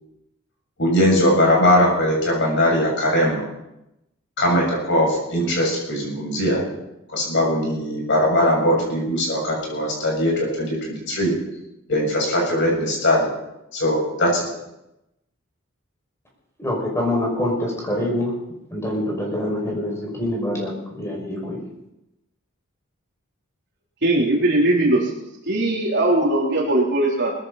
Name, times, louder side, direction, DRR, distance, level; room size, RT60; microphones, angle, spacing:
voice 1, 0.8-3.4 4.4-6.6 7.1-11.3 11.9-13.3 13.7-14.5, left 1 dB, 60° left, -1 dB, 7.3 m, -20 dB
voice 2, 16.6-18.3 18.7-21.6, left 1 dB, 15° left, -2 dB, 6.0 m, -25 dB
voice 3, 24.0-25.1 25.5-27.3, right 1 dB, 55° right, -3 dB, 3.6 m, -19 dB
21.0 x 14.5 x 4.2 m, 0.89 s
head